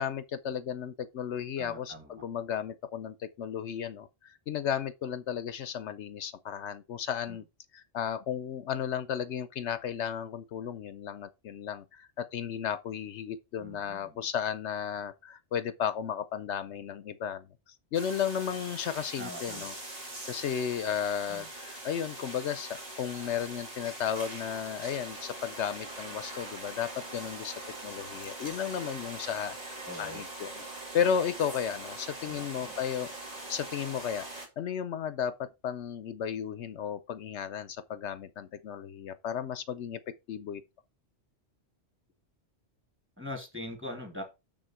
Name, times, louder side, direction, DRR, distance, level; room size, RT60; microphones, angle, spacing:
voice 1, 0.0-7.4 7.7-17.5 17.9-19.7 20.3-30.6 30.9-33.1 33.5-34.3 34.6-40.0 40.3-40.6, left 8 dB, 80° left, 1.0 m, -34 dB
voice 2, 1.6-2.2 7.3-7.4 13.6-14.2 19.2-19.7 21.3-21.5 29.8-30.2 32.3-32.8 43.2-44.2, left 1 dB, 10° right, 2.6 m, -42 dB
sound 1, 17.9-34.5, right 2 dB, 35° right, 2.2 m, -42 dB
6.8 x 6.4 x 4.4 m
omnidirectional pair, 1.2 m